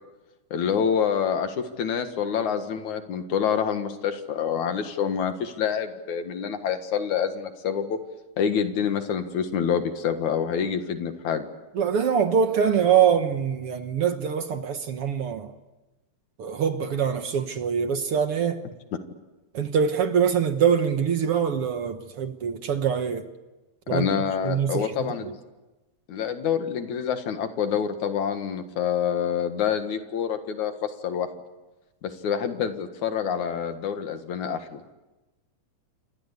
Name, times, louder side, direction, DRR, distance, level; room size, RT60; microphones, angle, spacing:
voice 1, 0.5-8.0 8.4-11.4 23.9-25.3 26.1-31.3 32.0-34.8, left 7 dB, 75° left, 3.1 m, -27 dB
voice 2, 11.8-15.5 16.4-18.6 19.5-23.3 23.9-24.1 24.4-24.9 25.2-25.3, right 7 dB, 55° right, 1.9 m, -24 dB
28.5 x 25.0 x 8.3 m
omnidirectional pair, 3.4 m